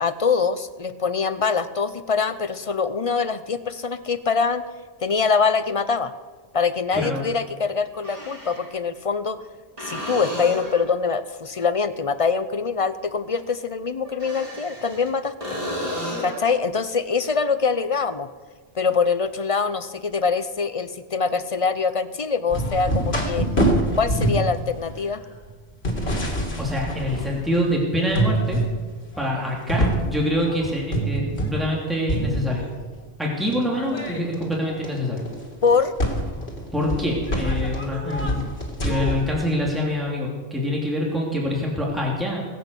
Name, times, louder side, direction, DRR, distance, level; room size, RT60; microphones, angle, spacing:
voice 1, 0.0-4.6 5.0-6.1 6.5-9.4 9.8-15.3 16.2-18.3 18.7-23.5 24.0-25.2 35.6-35.9, left 5 dB, 40° left, 12 dB, 0.6 m, -24 dB
sound 1, 7.9-8.7 9.8-10.9 14.0-15.1 15.4-16.5 20.1-20.2, left 1 dB, 35° right, 5.6 m, -32 dB
sound 2, 22.5-27.7 28.1-28.7 29.1-31.8 32.1-32.9 33.5-39.3, right 1 dB, 90° left, 2.8 m, -26 dB
voice 2, 26.6-28.6 29.2-32.6 33.2-35.2 36.7-38.4 38.8-42.4, equal, ahead, -3 dB, 2.7 m, -25 dB
21.0 x 8.2 x 6.8 m, 1.4 s
omnidirectional pair, 1.0 m